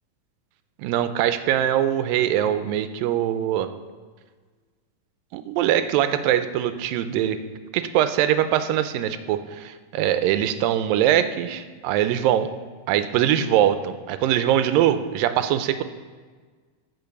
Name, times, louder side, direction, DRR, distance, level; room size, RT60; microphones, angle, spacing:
voice 1, 0.8-3.7 5.3-7.4 7.7-12.5 12.9-15.8, right 11 dB, 85° right, 10 dB, 2.3 m, -22 dB
13.0 x 5.1 x 6.9 m, 1.5 s
omnidirectional pair, 3.9 m